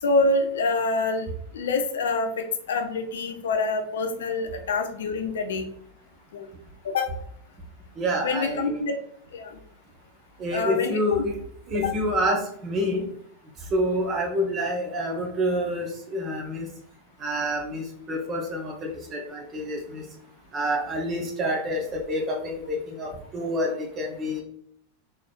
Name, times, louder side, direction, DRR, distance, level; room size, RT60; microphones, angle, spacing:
voice 1, 0.0-5.6 6.3-6.5 6.8-7.2 8.2-8.9 9.3-9.6 10.5-11.0 11.8-12.0, left 3 dB, 60° left, 5 dB, 0.5 m, -26 dB
voice 2, 8.0-8.9 10.4-11.4 11.7-13.0 13.7-16.7 17.2-20.0 20.5-24.4, equal, 30° right, 1 dB, 1.0 m, -27 dB
3.8 x 3.0 x 2.4 m, 0.66 s
figure-of-eight pair, 90°, 0 cm